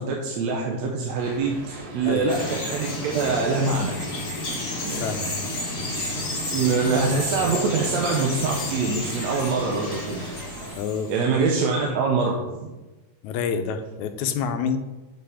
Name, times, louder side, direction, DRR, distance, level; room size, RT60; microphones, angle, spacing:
voice 1, 0.0-4.0 4.6-5.0 6.5-10.2 11.1-12.7, right 4 dB, 70° right, 0 dB, 2.0 m, -24 dB
sound 1, 1.1-10.8, right 1 dB, 40° right, 1.7 m, -40 dB
Bird vocalization bird call bird song, 2.3-11.2, left 2 dB, 30° left, 2.0 m, -31 dB
voice 2, 4.9-5.3 10.8-11.1 13.2-14.8, left 6 dB, 80° left, 8 dB, 2.0 m, -27 dB
7.7 x 5.8 x 4.9 m, 1.1 s
omnidirectional pair, 3.3 m